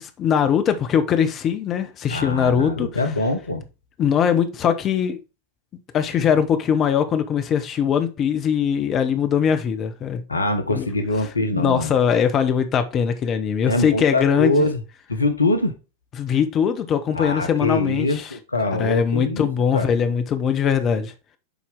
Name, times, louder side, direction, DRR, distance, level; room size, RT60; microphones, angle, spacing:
voice 1, 0.0-2.9 4.0-5.2 5.9-10.2 10.7-10.9 11.5-14.6 16.2-18.3 18.8-21.1, left 7 dB, 30° left, 0.8 m, -21 dB
voice 2, 2.1-3.6 10.3-11.9 13.7-14.8 15.1-15.7 17.1-19.5 19.7-19.9, left 2 dB, 80° left, 0.9 m, -23 dB
7.2 x 4.4 x 3.6 m
figure-of-eight pair, 90°, 0 cm